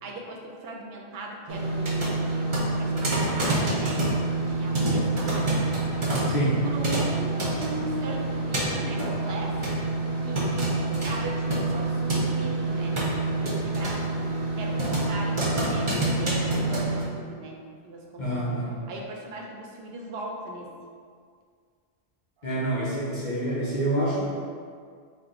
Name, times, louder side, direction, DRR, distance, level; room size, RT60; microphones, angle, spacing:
voice 1, 0.0-5.6 6.6-9.6 10.2-14.1 14.6-18.3 18.9-20.8, right 2 dB, 75° right, 0 dB, 0.8 m, -38 dB
sound 1, 1.5-17.0, right 2 dB, 35° right, 0.6 m, -27 dB
voice 2, 6.3-6.6 18.2-18.8 22.4-24.3, right 1 dB, 50° left, -7 dB, 0.8 m, -27 dB
4.3 x 2.1 x 3.7 m, 2.1 s
omnidirectional pair, 1.1 m